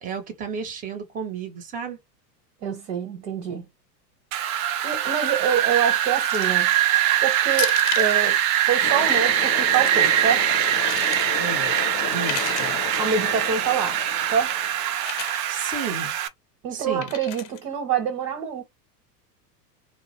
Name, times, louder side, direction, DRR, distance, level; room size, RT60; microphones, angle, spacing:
voice 1, 0.0-2.0 11.4-11.8 12.1-12.8 15.5-16.2 16.7-17.1, right 5 dB, 15° right, 0.6 m, -33 dB
voice 2, 2.6-3.7 4.6-6.7 7.2-8.4 8.7-10.5 13.0-14.0 14.3-14.5 16.6-18.6, right 7 dB, 75° right, 1.1 m, -26 dB
Wind, 4.3-16.3, right 11 dB, 55° right, 0.5 m, -23 dB
sound 1, 6.2-6.6 7.5-8.2 9.5-9.9 10.5-11.3 12.1-12.8 13.7-14.1 15.0-15.5 17.0-17.6, left 12 dB, 90° left, 0.6 m, -34 dB
sound 2, 8.7-15.2, left 7 dB, 30° left, 0.6 m, -34 dB
2.3 x 2.0 x 2.9 m
hypercardioid pair, 100°, 50 cm